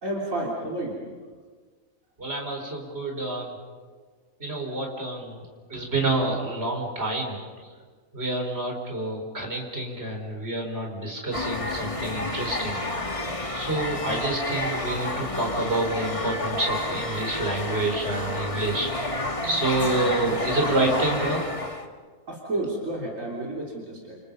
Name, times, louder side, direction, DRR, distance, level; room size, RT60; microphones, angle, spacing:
voice 1, 0.0-1.0 22.3-24.2, right 1 dB, 65° right, -3 dB, 3.8 m, -31 dB
voice 2, 2.2-3.5 4.4-5.4 5.7-7.4 8.1-12.8 13.5-19.0 19.4-21.4, right 2 dB, 45° right, 1 dB, 4.9 m, -28 dB
sound 1, 11.3-21.9, left 2 dB, 25° left, 1.7 m, -30 dB
29.0 x 28.5 x 5.5 m, 1.5 s
omnidirectional pair, 1.4 m